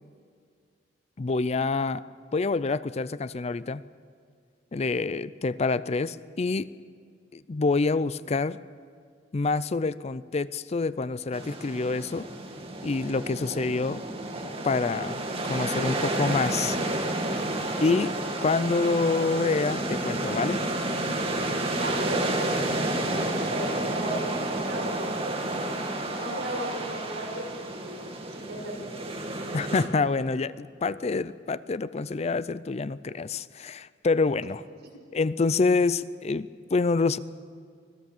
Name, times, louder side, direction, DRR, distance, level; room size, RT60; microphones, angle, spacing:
voice 1, 1.2-2.0 2.3-3.8 4.7-6.7 7.3-8.6 9.3-12.3 12.8-14.0 14.6-16.8 17.8-18.1 18.4-20.6 29.5-34.6 35.1-37.2, left 3 dB, 35° left, 16 dB, 0.4 m, -27 dB
sound 1, 11.3-29.9, right 2 dB, 35° right, 2.2 m, -30 dB
sound 2, 19.6-25.1, left 2 dB, 20° left, 3.0 m, -42 dB
voice 2, 21.7-22.8 23.1-25.7 26.1-28.0 28.3-29.4, right 1 dB, 70° right, -2 dB, 6.6 m, -36 dB
24.5 x 17.5 x 7.3 m, 2.1 s
head